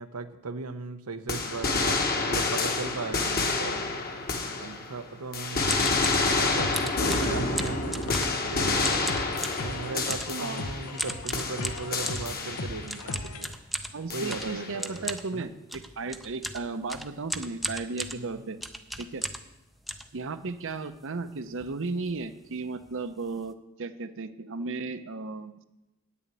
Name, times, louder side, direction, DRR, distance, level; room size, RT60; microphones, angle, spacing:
voice 1, 0.0-3.9 4.6-9.1 9.6-13.5 14.1-15.5 18.1-18.5, right 3 dB, 85° right, 9 dB, 0.9 m, -37 dB
sound 1, 1.3-5.0 5.3-11.0 11.3-13.0 14.1-14.8, left 3 dB, 45° left, 1.2 m, -28 dB
sound 2, 5.6-13.6, left 2 dB, 75° left, 0.8 m, -38 dB
sound 3, 5.6-6.3 6.7-8.5 8.8-9.7 10.1-10.4 11.0-12.3 12.9-19.5 19.9-20.7 21.2-21.3 21.5-21.8 22.0-22.2 22.8-22.9 23.2-23.5, equal, ahead, 0.5 m, -36 dB
voice 2, 10.3-10.6 13.9-18.6 19.0-19.2 20.1-25.6, right 3 dB, 60° right, 11 dB, 0.7 m, -35 dB
9.3 x 7.0 x 8.4 m, 0.98 s
head